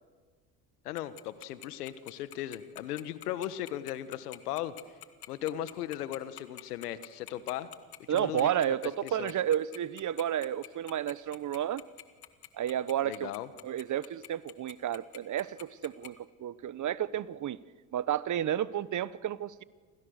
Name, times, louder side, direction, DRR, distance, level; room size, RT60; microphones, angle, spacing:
voice 1, 0.8-4.7 5.3-7.7 8.1-8.7 9.0-9.3 13.0-13.5, left 12 dB, 85° left, 13 dB, 1.5 m, -37 dB
Tick-tock, 1.0-16.1, left 14 dB, 55° left, 2.0 m, -46 dB
voice 2, 8.1-11.8 12.5-13.3 13.6-17.6 17.9-19.6, right 10 dB, 40° right, 18 dB, 1.0 m, -31 dB
28.5 x 26.0 x 6.6 m, 1.5 s
hypercardioid pair, 70°, 45 cm